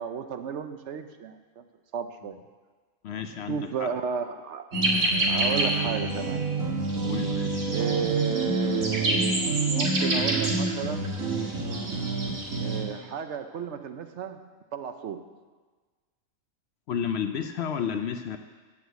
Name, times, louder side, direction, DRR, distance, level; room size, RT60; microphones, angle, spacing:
voice 1, 0.0-1.6 1.9-2.4 3.5-4.7 5.3-6.6 7.7-11.1 12.6-14.4 14.7-15.3, right 7 dB, 65° right, 8 dB, 0.9 m, -33 dB
voice 2, 3.0-3.9 7.0-7.7 16.9-18.4, left 7 dB, 65° left, 8 dB, 0.7 m, -31 dB
sound 1, 4.7-12.8, right 2 dB, 90° right, 2.2 m, -26 dB
8.0 x 7.2 x 8.0 m, 1.4 s
omnidirectional pair, 1.4 m